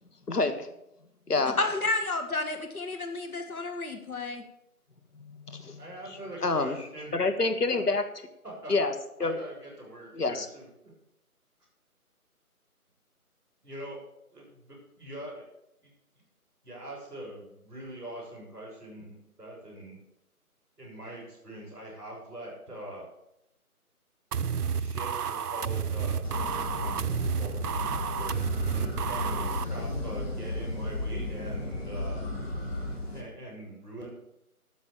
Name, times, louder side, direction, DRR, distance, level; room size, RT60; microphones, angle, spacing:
voice 1, 0.3-0.7 1.3-1.6 5.2-5.8 6.4-6.8 7.1-8.0 8.7-8.9 9.2-9.3 10.1-10.5, left 3 dB, 90° left, 8 dB, 1.5 m, -27 dB
voice 2, 1.6-4.4, left 2 dB, 70° left, 5 dB, 1.6 m, -31 dB
voice 3, 5.8-7.1 7.7-7.8 8.6-8.7 9.2-10.7 13.6-14.0 14.3-15.4 15.8-15.9 16.6-20.0 20.8-23.1 24.7-26.2 26.7-27.0 27.4-27.6 28.1-32.2 33.1-34.1, right 1 dB, 5° right, -15 dB, 5.8 m, -43 dB
sound 1, 24.3-29.7, right 7 dB, 85° right, 0.6 m, -31 dB
sound 2, 26.2-33.2, left 2 dB, 40° left, 2.9 m, -34 dB
13.0 x 6.4 x 7.2 m, 0.83 s
figure-of-eight pair, 165°, 45 cm